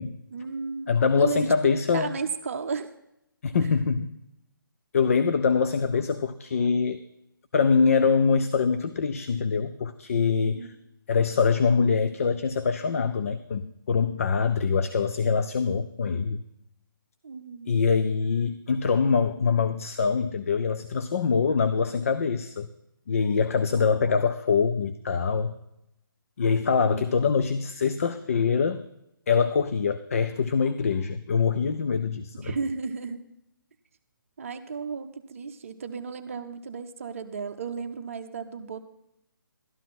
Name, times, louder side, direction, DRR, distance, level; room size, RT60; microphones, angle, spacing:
voice 1, 0.3-0.9 1.2-2.9 10.4-10.7 17.2-17.8 23.7-24.1 26.8-27.0 32.4-33.2 34.4-38.9, right 5 dB, 40° right, 7 dB, 0.7 m, -34 dB
voice 2, 0.9-2.2 3.4-4.1 4.9-7.0 7.5-10.7 11.1-16.4 17.7-22.7 23.1-25.6 26.4-28.9 29.3-32.5, left 5 dB, 40° left, 11 dB, 0.5 m, -24 dB
12.5 x 11.5 x 4.1 m, 0.82 s
figure-of-eight pair, 145°, 12 cm